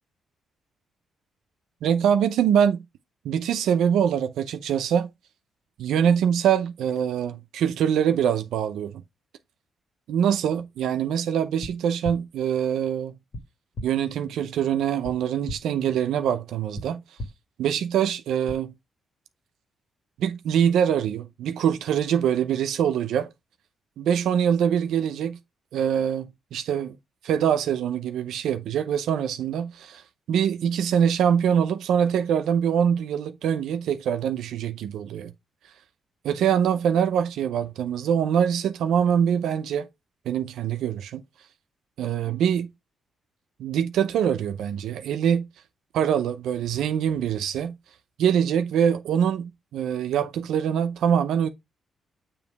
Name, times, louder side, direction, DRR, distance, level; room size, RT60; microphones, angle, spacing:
voice 1, 1.8-2.8 3.2-5.1 5.8-9.0 10.1-13.1 13.8-17.0 17.6-18.7 20.2-23.3 24.0-25.4 25.7-26.9 27.2-30.0 30.3-35.3 36.2-39.9 40.3-41.2 42.0-42.7 43.6-45.5 45.9-47.8 48.2-51.5, right 8 dB, 85° right, 0.6 m, -24 dB
sound 1, 11.6-11.7 12.0-12.2 13.3-13.4 13.7-13.9 15.0-15.1 15.5-15.6 16.8-16.9 17.2-17.3 18.5-18.6, left 1 dB, 50° left, 1.7 m, -33 dB
7.1 x 3.0 x 4.6 m
cardioid pair, 95°, 0 cm